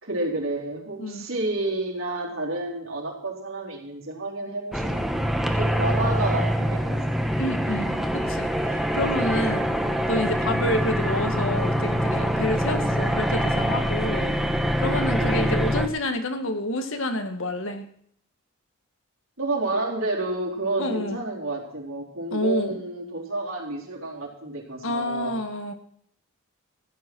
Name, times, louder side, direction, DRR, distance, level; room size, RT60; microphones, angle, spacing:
voice 1, 0.0-5.0 5.3-7.2 14.0-14.3 15.1-15.5 19.4-25.4, right 2 dB, 75° right, -1 dB, 4.1 m, -30 dB
sound 1, 4.7-15.9, equal, ahead, 1.2 m, -24 dB
voice 2, 7.4-9.6 10.1-14.3 14.8-17.8 20.8-21.2 22.3-22.8 24.8-25.7, left 1 dB, 70° left, 6 dB, 1.7 m, -28 dB
15.5 x 10.5 x 6.2 m, 0.66 s
head